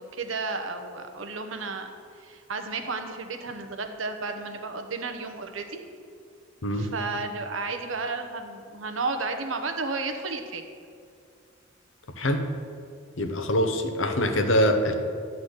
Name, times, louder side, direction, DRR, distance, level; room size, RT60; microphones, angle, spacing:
voice 1, 0.0-1.9 2.2-5.8 6.7-10.6, right 3 dB, 85° right, 5 dB, 0.9 m, -32 dB
voice 2, 13.2-14.9, equal, 80° left, 6 dB, 0.9 m, -24 dB
11.5 x 4.1 x 8.0 m, 2.3 s
head